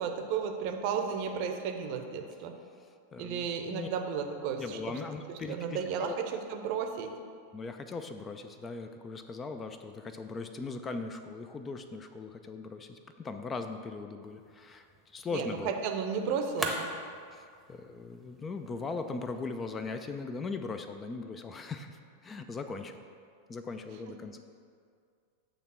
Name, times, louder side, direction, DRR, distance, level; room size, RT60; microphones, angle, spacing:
voice 1, 0.0-2.5 3.2-4.8 5.3-6.2 6.5-7.1 15.3-16.9, right 6 dB, 45° right, 5 dB, 0.7 m, -33 dB
voice 2, 2.8-3.9 4.6-6.1 7.5-14.9 15.1-15.8 17.3-23.0 23.5-24.4, left 4 dB, 20° left, 7 dB, 0.4 m, -39 dB
sound 1, 14.2-20.1, right 1 dB, 5° right, 0.9 m, -43 dB
8.4 x 3.5 x 5.6 m, 2.2 s
figure-of-eight pair, 90°, 0 cm